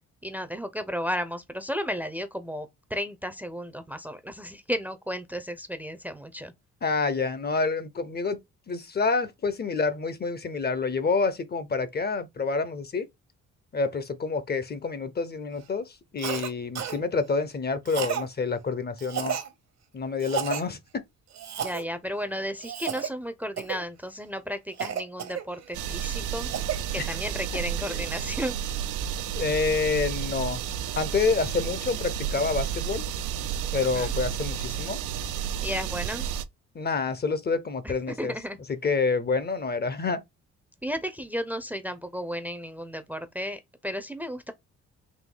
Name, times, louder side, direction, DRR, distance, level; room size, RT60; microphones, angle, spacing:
voice 1, 0.2-6.5 21.6-26.5 26.9-28.6 33.8-34.1 35.6-36.3 37.8-38.6 40.8-44.5, equal, 5° right, 0.6 m, -33 dB
voice 2, 6.8-8.4 8.7-13.1 13.7-15.8 16.1-19.4 19.9-20.8 27.0-27.1 27.9-28.1 29.3-30.6 31.0-33.0 33.7-35.0 36.7-38.3 38.7-40.2, left 4 dB, 35° left, 0.7 m, -28 dB
Cough, 16.2-16.5 16.8-17.0 17.9-18.3 19.0-19.5 20.2-20.6 21.3-21.8 22.6-23.1 23.6-23.8 24.8-25.8 26.2-26.8, right 8 dB, 60° right, 1.1 m, -32 dB
sound 1, 25.7-36.5, right 9 dB, 85° right, 0.5 m, -31 dB
4.0 x 2.7 x 3.7 m
cardioid pair, 90°, 30 cm